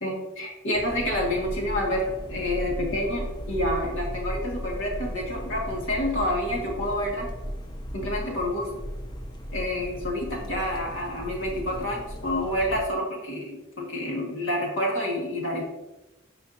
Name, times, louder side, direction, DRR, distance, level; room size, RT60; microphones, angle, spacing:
voice 1, 0.0-7.3 7.9-8.7 9.5-15.6, left 1 dB, 75° left, -1 dB, 2.0 m, -28 dB
sound 1, 0.7-12.8, equal, 25° left, 0.7 m, -36 dB
9.1 x 5.9 x 2.8 m, 1.0 s
head